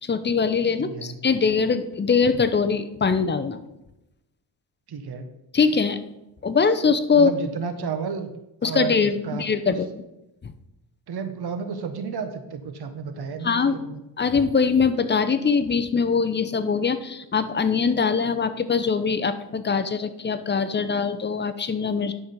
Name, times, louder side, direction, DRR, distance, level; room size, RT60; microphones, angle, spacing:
voice 1, 0.0-3.6 5.5-6.0 6.4-7.3 8.6-9.9 10.4-10.5 13.4-13.8 14.2-22.1, left 5 dB, 25° left, 10 dB, 0.7 m, -22 dB
voice 2, 0.8-1.2 4.9-5.3 7.1-8.3 8.6-9.8 11.1-14.0, right 6 dB, 60° right, 8 dB, 1.3 m, -32 dB
10.0 x 6.3 x 5.2 m, 0.90 s
cardioid pair, 115°, 43 cm